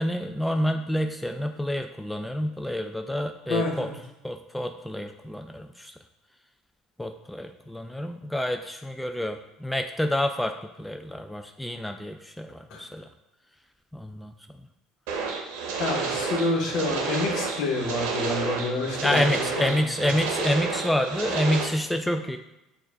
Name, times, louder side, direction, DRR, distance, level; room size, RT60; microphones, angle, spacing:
voice 1, 0.0-3.9 4.2-5.9 7.0-13.1 13.9-14.3 19.0-22.4, left 1 dB, 5° left, 5 dB, 0.3 m, -28 dB
voice 2, 3.5-3.9 12.7-12.8 15.8-20.1, left 2 dB, 65° left, 1 dB, 1.0 m, -28 dB
sound 1, 15.1-21.7, right 4 dB, 80° right, 0.7 m, -30 dB
6.1 x 2.4 x 3.4 m, 0.93 s
supercardioid pair, 80°, 0 cm